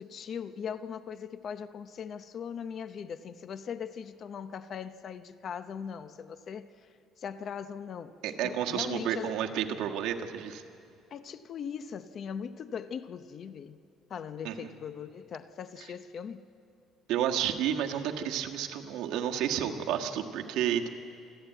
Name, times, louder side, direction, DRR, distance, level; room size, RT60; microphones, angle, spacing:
voice 1, 0.0-6.7 7.2-8.1 8.4-9.3 11.1-13.8 14.1-16.5, left 7 dB, 40° left, 0.6 m, -40 dB
voice 2, 8.2-10.6 14.4-14.6 17.1-20.9, right 9 dB, 75° right, 1.5 m, -31 dB
27.5 x 13.0 x 9.1 m
cardioid pair, 150°, 0 cm